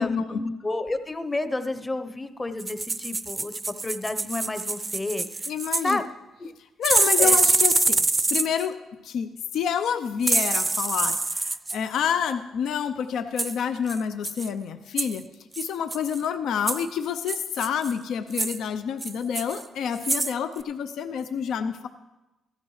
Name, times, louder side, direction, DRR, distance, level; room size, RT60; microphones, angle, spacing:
voice 1, 0.0-5.5 5.8-6.0 6.4-6.5 7.2-7.4, left 2 dB, 20° left, 10 dB, 0.8 m, -30 dB
sound 1, 2.6-6.0 6.8-8.7 10.2-11.8 13.4-13.6 13.9-14.0 14.2-14.5 15.0-15.2 15.5-16.2 16.7-16.8 17.3-17.9 18.3-18.6 19.0-19.6 20.0-20.3 20.6-20.7, right 3 dB, 20° right, 0.5 m, -25 dB
voice 2, 5.5-6.0 6.8-8.8 9.0-15.2 15.6-21.9, left 7 dB, 75° left, 9 dB, 0.5 m, -28 dB
15.0 x 12.0 x 3.2 m, 1.1 s
cardioid pair, 90°, 0 cm